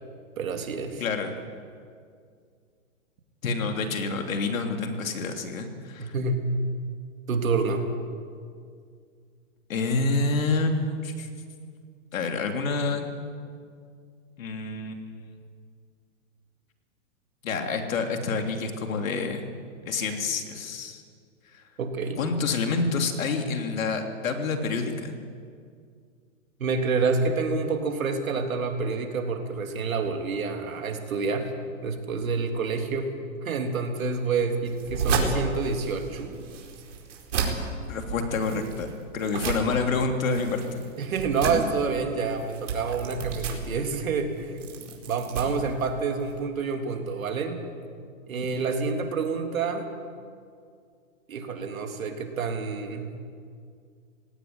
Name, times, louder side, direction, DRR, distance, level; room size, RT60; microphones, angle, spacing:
voice 1, 0.4-1.0 6.0-6.4 7.3-7.9 21.8-22.2 26.6-31.5 31.8-33.1 33.4-36.2 41.0-44.6 45.0-47.6 48.3-49.9 51.3-53.1, right 4 dB, 85° right, 4 dB, 3.3 m, -28 dB
voice 2, 1.0-1.3 3.4-6.1 9.7-11.3 12.1-13.1 14.4-15.4 17.4-19.4 19.9-21.0 21.5-21.6 22.2-25.2 37.9-38.9 39.1-40.8, left 4 dB, 75° left, 5 dB, 3.3 m, -28 dB
sound 1, 34.6-46.4, right 4 dB, 60° right, 4.5 m, -33 dB
19.0 x 17.5 x 9.5 m, 2.2 s
hypercardioid pair, 145°, 40 cm